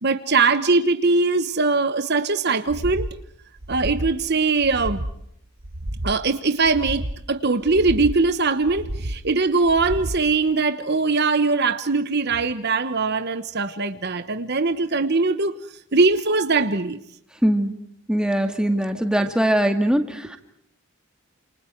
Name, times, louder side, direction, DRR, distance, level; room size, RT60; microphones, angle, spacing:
voice 1, 0.0-3.1 3.7-5.0 6.0-15.6 15.9-17.0, right 3 dB, 50° right, 10 dB, 1.1 m, -21 dB
sound 1, 2.7-3.2 3.6-4.2 4.6-5.2 5.6-6.2 6.6-7.2 7.6-8.2 8.6-9.2 9.6-10.2, right 1 dB, 65° right, 1.7 m, -31 dB
voice 2, 17.4-17.7 18.1-20.4, right 1 dB, 5° right, 6 dB, 2.2 m, -21 dB
29.5 x 28.0 x 4.6 m, 0.71 s
head